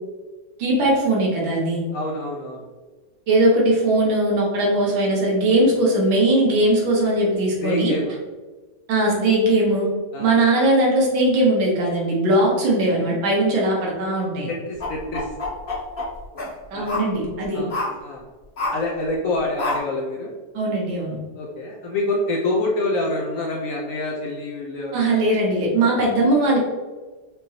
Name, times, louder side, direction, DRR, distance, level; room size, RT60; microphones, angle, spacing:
voice 1, 0.6-1.8 3.3-7.9 8.9-9.9 10.2-14.5 16.7-17.6 20.5-21.2 24.9-26.6, right 1 dB, 85° right, -3 dB, 1.9 m, -19 dB
voice 2, 1.9-2.7 7.6-8.2 10.1-10.3 14.5-15.3 16.7-16.9 17.5-17.7 18.0-18.2 18.7-20.3 21.3-25.2, left 2 dB, 80° left, -1 dB, 0.7 m, -26 dB
sound 1, 14.8-16.5 16.9-17.1 17.7-17.9 18.6-18.8 19.6-19.8, left 2 dB, 35° left, 1.2 m, -27 dB
5.0 x 3.0 x 2.8 m, 1.3 s
omnidirectional pair, 2.1 m